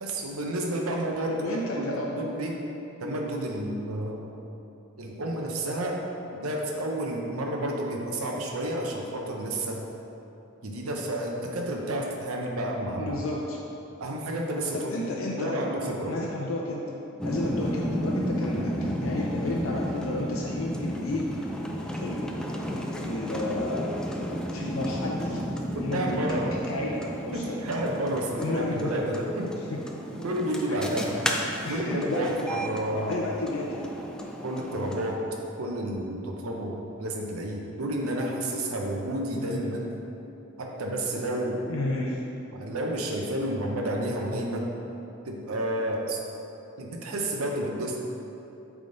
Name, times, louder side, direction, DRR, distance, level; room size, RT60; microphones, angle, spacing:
voice 1, 0.0-2.6 3.0-4.3 5.0-6.0 6.3-9.8 10.6-13.2 14.0-14.8 15.4-16.1 25.7-26.6 27.3-29.5 30.2-31.2 31.7-33.2 34.4-35.2 35.6-39.9 40.6-41.6 42.5-44.7 45.2-46.2 46.8-48.0, right 1 dB, 90° right, 0 dB, 0.8 m, -30 dB
voice 2, 1.3-2.2 13.0-13.6 14.7-16.9 17.2-21.6 22.0-22.2 23.0-23.9 24.5-25.4 25.7-27.6 28.4-28.9 29.7-29.8 30.1-30.3 30.7-30.8 31.6-32.5 33.1-33.9 39.3-39.7 41.7-42.2, left 2 dB, 70° left, -3 dB, 0.6 m, -32 dB
sound 1, 17.2-35.1, equal, 5° left, 0.4 m, -33 dB
8.5 x 3.6 x 3.9 m, 2.8 s
head